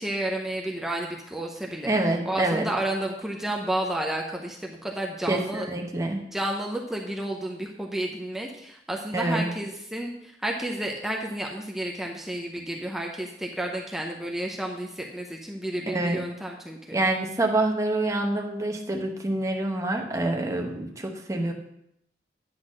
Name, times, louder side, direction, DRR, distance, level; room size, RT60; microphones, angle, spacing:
voice 1, 0.0-1.9 2.2-5.7 6.3-17.0, right 1 dB, ahead, 0 dB, 0.6 m, -31 dB
voice 2, 1.9-2.7 5.3-6.3 9.1-9.5 15.9-16.2 16.9-21.5, right 2 dB, 20° right, 2 dB, 1.0 m, -26 dB
9.9 x 4.0 x 6.3 m, 0.78 s
head